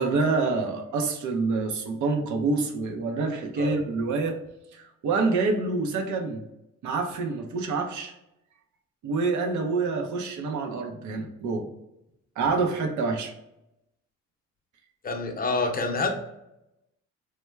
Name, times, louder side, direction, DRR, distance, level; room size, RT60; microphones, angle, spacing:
voice 1, 0.0-4.4 4.7-6.4 6.8-8.1 9.0-11.7 12.4-13.3, right 3 dB, 75° right, 4 dB, 0.7 m, -27 dB
voice 2, 15.0-16.1, left 3 dB, 30° left, 4 dB, 0.6 m, -27 dB
3.2 x 2.1 x 3.3 m, 0.86 s
cardioid pair, 90°, 30 cm